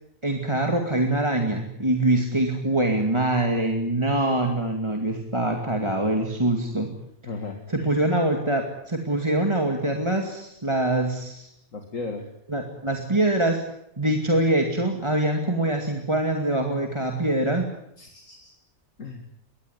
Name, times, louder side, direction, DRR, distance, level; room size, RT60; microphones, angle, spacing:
voice 1, 0.2-6.9 7.7-11.5 12.5-13.6 14.0-17.7, right 1 dB, 20° right, 3 dB, 2.4 m, -24 dB
voice 2, 7.3-7.9 11.7-12.3 18.0-18.5 19.0-19.2, left 3 dB, 65° left, 4 dB, 2.5 m, -36 dB
23.0 x 19.0 x 9.6 m, 0.76 s
omnidirectional pair, 1.5 m